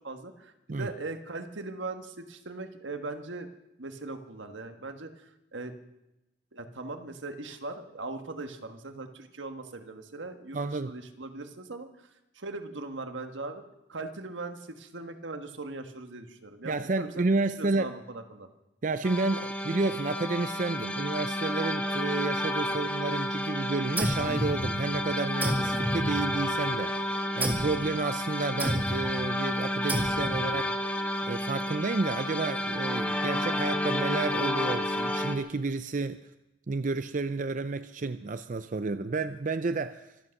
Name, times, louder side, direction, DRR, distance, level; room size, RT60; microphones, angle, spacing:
voice 1, 0.0-3.5 3.8-5.7 6.5-10.6 10.8-11.9 12.3-13.6 13.9-18.5 22.7-22.8, right 3 dB, 80° right, 7 dB, 1.6 m, -40 dB
voice 2, 10.5-10.9 16.6-18.0 18.8-30.7 31.2-36.3 36.7-40.2, right 3 dB, 40° right, 11 dB, 0.5 m, -31 dB
sound 1, 19.0-35.4, left 1 dB, 5° left, 1.3 m, -31 dB
sound 2, 24.0-25.0 25.4-26.7 27.4-27.8 28.6-29.1 29.9-30.5, equal, 10° right, 1.7 m, -31 dB
25.0 x 8.6 x 6.5 m, 0.92 s
head